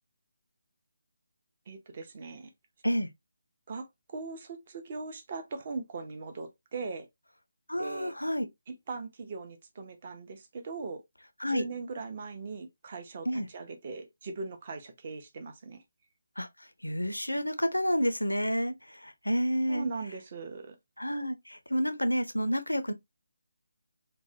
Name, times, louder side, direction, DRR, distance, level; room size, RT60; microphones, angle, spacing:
voice 1, 1.7-2.5 3.7-7.1 7.8-8.1 8.7-11.0 11.5-15.8 19.7-20.8, right 4 dB, 35° right, 0.5 m, -40 dB
voice 2, 7.7-8.5 11.4-11.7 13.3-13.5 16.4-16.5 16.8-19.9 21.0-22.9, equal, 85° left, 0.5 m, -29 dB
3.1 x 2.1 x 2.6 m
figure-of-eight pair, 150°, 0 cm